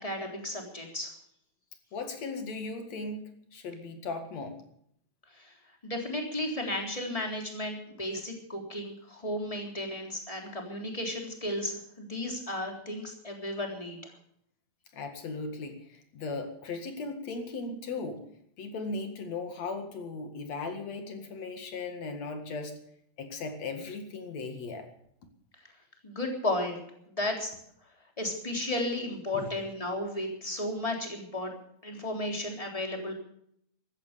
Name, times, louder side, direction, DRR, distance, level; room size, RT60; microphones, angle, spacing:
voice 1, 0.0-1.1 5.3-5.5 5.8-14.1 26.0-26.8 27.1-27.5 28.2-31.5 31.8-33.1, left 1 dB, 10° left, 1 dB, 3.5 m, -34 dB
voice 2, 1.9-4.6 14.9-18.2 18.6-22.8 23.2-24.9 29.3-29.5, left 3 dB, 65° left, 6 dB, 3.1 m, -37 dB
15.0 x 14.0 x 6.8 m, 0.70 s
omnidirectional pair, 3.4 m